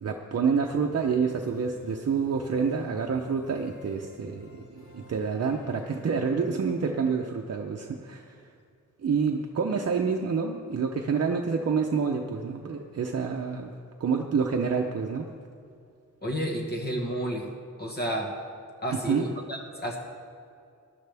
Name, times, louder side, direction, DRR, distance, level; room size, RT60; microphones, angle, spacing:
voice 1, 0.0-8.4 9.0-13.7 14.0-15.3 19.1-19.3, right 5 dB, 55° right, 2 dB, 0.7 m, -28 dB
sound 1, 0.7-6.3, left 3 dB, 70° left, 2.3 m, -52 dB
voice 2, 16.2-17.5 17.8-18.3 18.8-20.0, right 1 dB, 30° left, 0 dB, 1.4 m, -31 dB
19.5 x 11.5 x 3.5 m, 2.3 s
wide cardioid pair, 180°, 31 cm